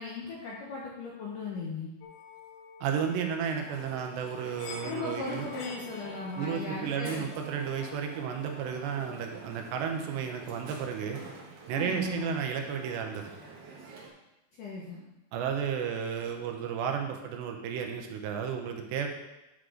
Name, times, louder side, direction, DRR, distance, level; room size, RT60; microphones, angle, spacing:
voice 1, 0.0-1.9 4.8-7.3 11.7-12.4 14.6-15.0, left 4 dB, 70° left, -4 dB, 2.0 m, -37 dB
sound 1, 2.0-13.7, left 6 dB, 90° left, 3.1 m, -51 dB
voice 2, 2.8-5.5 6.4-11.2 11.7-13.3 15.3-19.1, right 7 dB, 80° right, 4 dB, 2.9 m, -33 dB
Crowd, 3.5-14.1, right 3 dB, 60° right, 2.4 m, -48 dB
9.4 x 6.6 x 3.8 m, 0.96 s
omnidirectional pair, 5.1 m